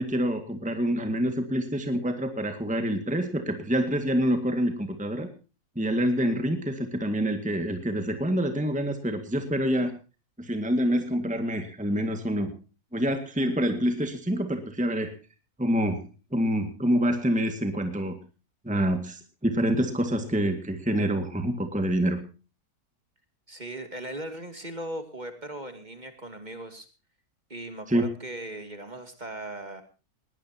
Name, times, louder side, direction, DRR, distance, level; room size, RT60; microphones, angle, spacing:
voice 1, 0.0-5.3 5.8-9.9 10.4-12.5 12.9-15.1 15.6-16.0 16.3-18.2 18.6-22.2 27.9-28.0, equal, 5° right, 7 dB, 1.9 m, -26 dB
voice 2, 23.5-26.9 27.5-29.8, right 1 dB, 30° right, 7 dB, 2.6 m, -38 dB
21.0 x 18.0 x 2.9 m, 0.34 s
omnidirectional pair, 1.6 m